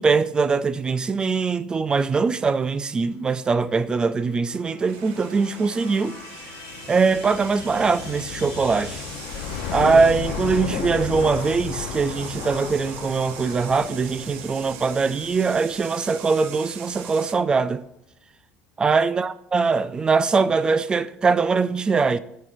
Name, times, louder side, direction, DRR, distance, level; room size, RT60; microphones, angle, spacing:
voice 1, 0.0-6.2 6.9-9.0 9.7-17.9 18.8-22.2, right 4 dB, 20° right, 0.4 m, -22 dB
sound 1, 3.3-16.7, left 8 dB, 85° left, 0.7 m, -35 dB
sound 2, 4.9-17.3, right 10 dB, 75° right, 0.6 m, -41 dB
13.5 x 4.6 x 2.5 m
cardioid pair, 125°, 4 cm